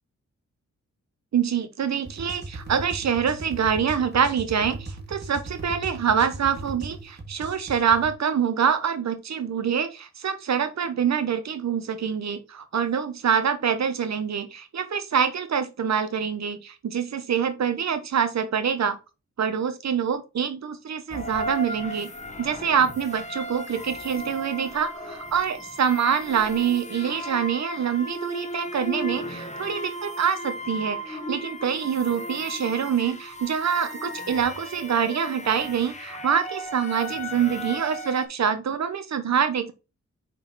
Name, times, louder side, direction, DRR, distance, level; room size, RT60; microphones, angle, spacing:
voice 1, 1.3-19.0 19.4-22.1 22.4-39.7, right 7 dB, 70° right, 1.1 m, -25 dB
sound 1, 2.0-8.1, right 2 dB, 35° right, 1.9 m, -38 dB
sound 2, 21.1-38.3, equal, 25° left, 1.3 m, -36 dB
6.0 x 4.2 x 4.1 m
cardioid pair, 85°, 29 cm